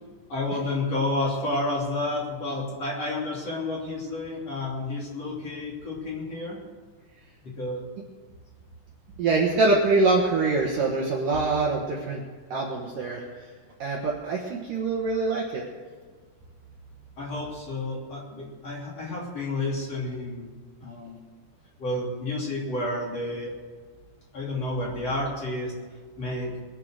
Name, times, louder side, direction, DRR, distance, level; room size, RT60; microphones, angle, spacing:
voice 1, 0.3-6.6 7.4-7.8 17.2-20.5 20.8-21.2 21.8-23.5 24.3-25.7 26.2-26.5, left 2 dB, 40° left, -5 dB, 3.6 m, -30 dB
voice 2, 9.2-12.2 12.5-13.5 13.8-15.6, right 3 dB, 65° right, -1 dB, 2.4 m, -24 dB
22.5 x 7.7 x 6.5 m, 1.5 s
omnidirectional pair, 5.3 m